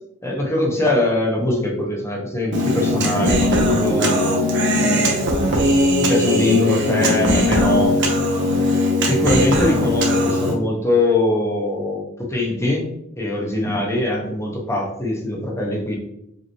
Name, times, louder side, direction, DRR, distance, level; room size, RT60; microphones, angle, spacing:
voice 1, 0.2-4.2 4.8-5.2 6.0-7.9 8.5-8.8 9.1-12.9 13.2-15.9, left 1 dB, 15° left, -1 dB, 1.0 m, -22 dB
Human voice, 2.5-10.5, left 1 dB, 60° right, 0.9 m, -19 dB
5.2 x 2.9 x 3.0 m, 0.78 s
head